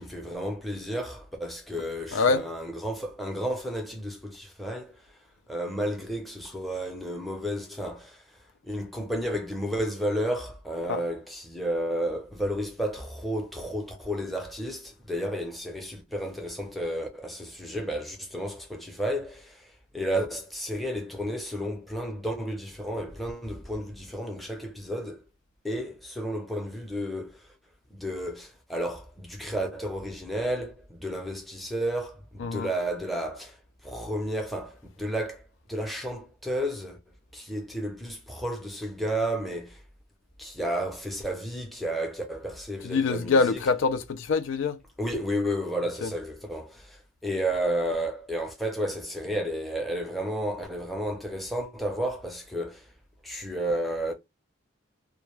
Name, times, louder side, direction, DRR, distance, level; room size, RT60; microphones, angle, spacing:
voice 1, 0.0-5.0 5.5-8.2 8.6-19.7 19.9-25.2 25.6-27.4 27.9-33.6 33.8-35.4 35.7-37.0 37.3-39.8 40.4-43.6 45.0-52.8 53.2-54.1, equal, ahead, 0.6 m, -32 dB
voice 2, 2.1-2.4 10.9-11.0 32.4-32.7 42.8-44.8 46.0-46.1, left 4 dB, 75° left, 0.4 m, -25 dB
2.2 x 2.1 x 3.0 m
head